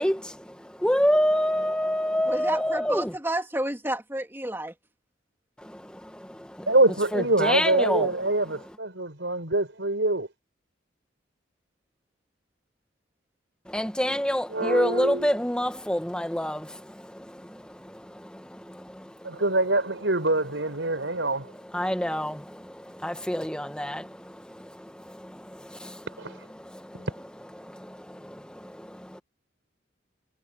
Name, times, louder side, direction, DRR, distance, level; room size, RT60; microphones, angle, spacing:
voice 1, 0.0-3.1 5.6-6.7 7.1-8.1 8.4-8.5 13.7-19.4 20.8-27.1 27.6-29.2, equal, 5° left, 1.7 m, -29 dB
voice 2, 2.3-4.7, right 1 dB, 10° right, 3.1 m, -30 dB
voice 3, 6.7-10.3 14.5-15.3 19.2-21.5 26.2-26.4 26.9-27.0, right 2 dB, 70° right, 5.2 m, -25 dB
head